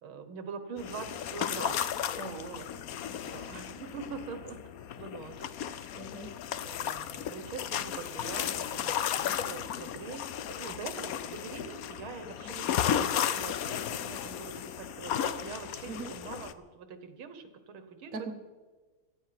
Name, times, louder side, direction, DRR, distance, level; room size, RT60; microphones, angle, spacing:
voice 1, 0.0-1.9 3.2-4.6 5.0-6.1 6.6-18.3, right 5 dB, 75° right, 9 dB, 2.0 m, -44 dB
sound 1, 0.8-16.5, left 9 dB, 75° left, 0.8 m, -34 dB
voice 2, 2.2-2.7 5.9-6.3 15.9-16.1 18.1-18.3, right 4 dB, 45° right, 4 dB, 1.5 m, -40 dB
17.0 x 13.0 x 5.9 m, 1.3 s
omnidirectional pair, 2.4 m